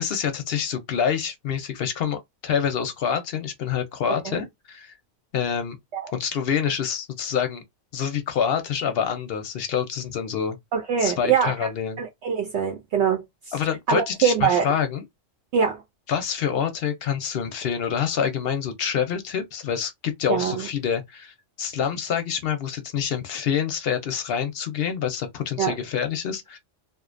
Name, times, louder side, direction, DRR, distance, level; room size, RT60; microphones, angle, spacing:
voice 1, 0.0-4.9 5.3-5.8 6.1-7.6 7.9-10.6 11.0-12.0 13.5-15.0 16.1-26.6, left 8 dB, 60° left, 0.7 m, -27 dB
voice 2, 10.7-11.7 12.0-13.6 13.9-14.7 15.5-15.8 20.3-20.7 25.6-25.7, right 7 dB, 70° right, 0.8 m, -23 dB
2.5 x 2.1 x 2.4 m
omnidirectional pair, 1.3 m